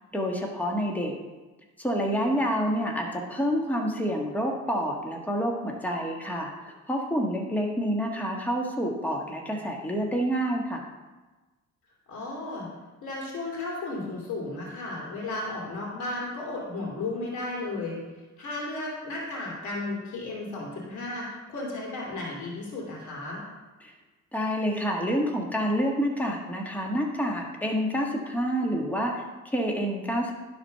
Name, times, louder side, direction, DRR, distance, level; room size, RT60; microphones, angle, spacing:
voice 1, 0.1-1.1 1.8-10.9 23.8-23.9 24.3-30.3, equal, 5° left, 0 dB, 1.4 m, -28 dB
voice 2, 12.1-12.7 13.0-18.0 18.4-23.4, left 2 dB, 75° left, -3 dB, 2.7 m, -34 dB
10.5 x 4.3 x 5.6 m, 1.2 s
cardioid pair, 90°, 30 cm